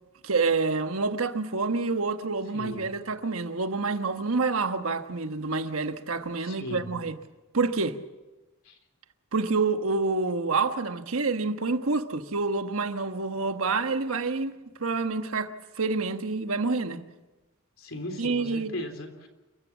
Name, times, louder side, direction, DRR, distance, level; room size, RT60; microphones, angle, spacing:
voice 1, 0.2-7.1 7.5-8.0 9.3-17.0 18.2-18.7, right 4 dB, 80° right, 1.3 m, -28 dB
voice 2, 2.5-2.9 6.4-7.0 8.7-8.8 17.8-19.3, left 1 dB, 70° left, 3.5 m, -37 dB
29.0 x 15.5 x 7.3 m
head